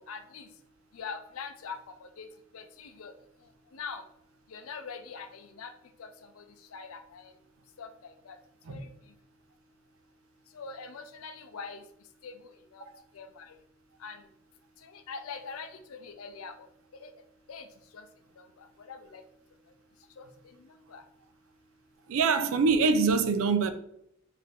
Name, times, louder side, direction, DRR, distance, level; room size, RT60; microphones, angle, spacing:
voice 1, 0.1-0.5 0.9-1.8 2.2-2.3 2.5-3.1 3.7-4.0 4.5-5.7 6.0-6.1 6.4-6.5 6.7-7.3 7.8-7.9 8.3-8.4 8.7-8.9 10.6-11.8 12.2-12.3 12.7-12.8 13.2-13.5 14.0-14.2 14.9-16.5 17.0-17.1 17.5-17.7 17.9-18.0 18.4-18.5 18.9-19.2 20.2-20.3 20.9-21.0, left 5 dB, 90° left, 0.5 m, -42 dB
voice 2, 22.1-23.7, right 4 dB, 80° right, 0.4 m, -24 dB
4.0 x 2.7 x 3.4 m
head